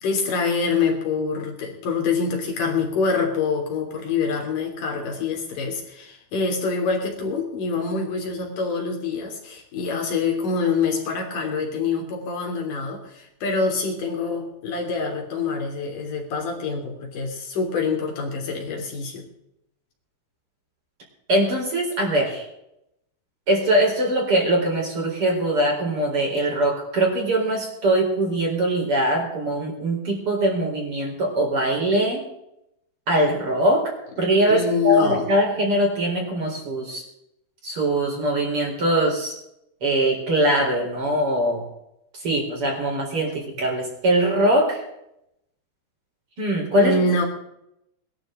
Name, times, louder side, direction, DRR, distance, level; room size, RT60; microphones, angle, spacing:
voice 1, 0.0-19.2 34.5-35.3 46.8-47.2, left 4 dB, 50° left, 1 dB, 4.7 m, -25 dB
voice 2, 21.3-22.4 23.5-32.2 33.1-33.8 34.2-37.0 37.6-39.3 39.8-41.6 42.2-44.8 46.4-47.0, right 1 dB, 35° right, -1 dB, 4.8 m, -22 dB
21.5 x 12.5 x 3.9 m, 0.80 s
omnidirectional pair, 4.9 m